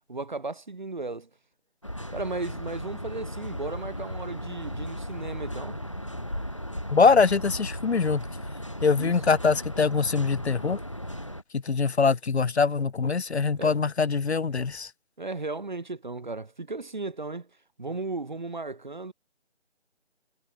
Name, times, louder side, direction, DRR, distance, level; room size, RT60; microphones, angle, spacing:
voice 1, 0.1-1.3 2.1-5.8 9.0-9.2 13.6-13.8 15.2-17.5 17.8-19.1, right 3 dB, 40° right, 1.2 m, -35 dB
sound 1, 1.8-11.4, equal, 25° left, 0.8 m, -36 dB
voice 2, 6.9-8.2 8.8-10.8 11.5-14.9, left 5 dB, 65° left, 0.8 m, -23 dB
sound 2, 14.6-14.9, left 3 dB, ahead, 2.3 m, -64 dB
figure-of-eight pair, 180°, 36 cm